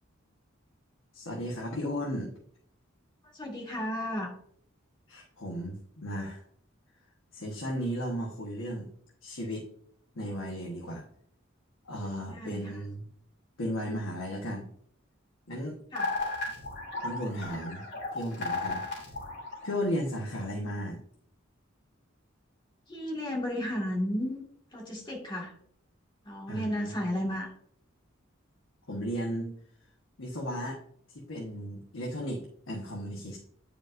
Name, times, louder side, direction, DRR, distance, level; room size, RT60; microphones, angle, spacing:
voice 1, 1.1-2.3 5.1-6.4 7.3-8.9 9.2-9.7 10.1-11.0 11.8-13.1 13.6-14.7 15.5-15.8 17.0-17.9 18.1-18.8 19.6-21.0 26.5-26.9 28.9-29.5 30.2-30.8 31.3-33.4, equal, 85° left, -1 dB, 1.2 m, -35 dB
voice 2, 3.3-4.3 12.3-12.8 15.9-16.1 22.9-24.4 24.7-25.5 26.2-27.5, equal, 25° left, -2 dB, 1.9 m, -33 dB
sound 1, 16.0-20.2, left 3 dB, 60° left, 2.9 m, -35 dB
9.1 x 5.0 x 2.5 m, 0.64 s
head